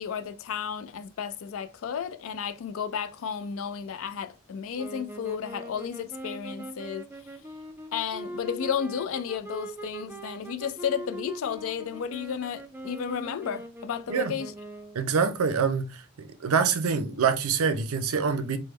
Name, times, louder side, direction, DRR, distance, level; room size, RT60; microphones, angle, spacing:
voice 1, 0.0-7.0 7.9-14.5, left 7 dB, 60° left, 0.3 m, -33 dB
sound 1, 4.8-15.1, right 1 dB, 10° right, 0.4 m, -41 dB
voice 2, 14.9-18.6, right 6 dB, 75° right, 0.5 m, -25 dB
3.4 x 2.1 x 3.1 m
head